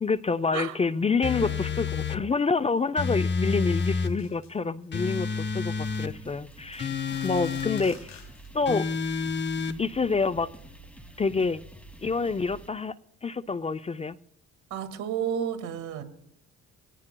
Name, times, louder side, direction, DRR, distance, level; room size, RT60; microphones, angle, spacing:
voice 1, 0.0-6.9 7.2-8.1 8.5-8.9 9.8-10.5 11.2-11.6 12.0-12.9 13.2-14.2, left 4 dB, 20° left, 14 dB, 0.4 m, -27 dB
sound 1, 1.2-2.2 3.0-4.1 4.9-6.1 6.8-7.9 8.7-9.8, left 5 dB, 40° left, 0.9 m, -29 dB
sound 2, 3.4-4.6 4.8-5.3 5.9-6.1 6.5-8.5, left 6 dB, 60° left, 3.0 m, -52 dB
sound 3, 5.8-12.7, right 1 dB, 5° left, 2.4 m, -48 dB
voice 2, 14.7-16.0, right 8 dB, 80° right, 7 dB, 1.9 m, -32 dB
22.5 x 17.5 x 2.2 m, 0.79 s
cardioid pair, 90°, 30 cm